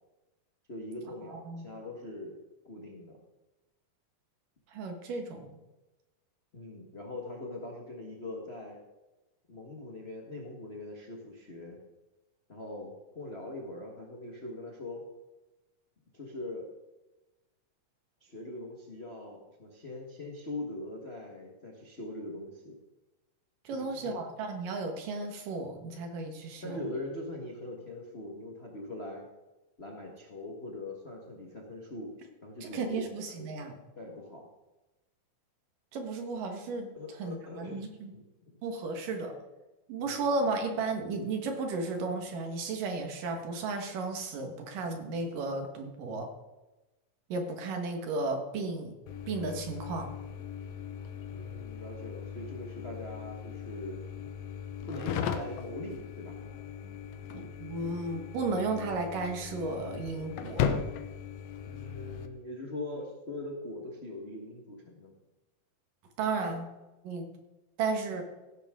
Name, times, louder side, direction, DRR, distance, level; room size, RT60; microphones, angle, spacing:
voice 1, 0.7-2.3 2.6-3.2 6.5-8.8 9.5-11.8 12.5-15.0 16.1-16.7 18.2-22.7 23.7-24.2 26.6-29.2 29.8-32.1 32.4-33.5 34.0-34.5 36.9-37.9 38.1-38.2 40.0-40.3 51.3-54.0 54.9-56.4 61.7-65.1, left 2 dB, 40° left, -1 dB, 0.8 m, -42 dB
voice 2, 1.3-1.7 4.7-5.6 23.6-26.8 32.6-33.8 35.9-36.9 37.2-38.1 38.6-39.3 39.9-46.3 47.3-48.9 49.3-50.1 57.3-60.6 66.2-66.7 67.0-67.3 67.8-68.2, right 3 dB, 75° right, 4 dB, 3.3 m, -34 dB
sound 1, 49.1-62.3, left 7 dB, 70° left, 1.5 m, -38 dB
16.0 x 11.0 x 3.8 m, 1.1 s
omnidirectional pair, 3.8 m